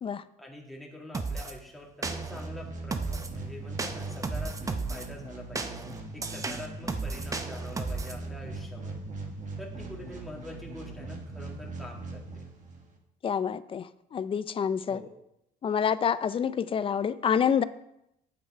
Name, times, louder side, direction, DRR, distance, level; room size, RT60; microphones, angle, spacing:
voice 1, 0.4-5.8 6.1-9.0 9.6-12.4 14.9-15.1, left 1 dB, ahead, -3 dB, 2.1 m, -45 dB
sound 1, 1.1-1.5 2.0-2.5 2.9-3.4 3.8-5.1 5.6-8.2, right 4 dB, 20° right, 0.7 m, -34 dB
sound 2, 2.0-13.0, right 3 dB, 50° right, 1.6 m, -40 dB
voice 2, 13.2-15.0 15.6-17.6, left 7 dB, 30° left, 16 dB, 0.4 m, -27 dB
8.7 x 6.8 x 4.8 m, 0.81 s
cardioid pair, 110°, 17 cm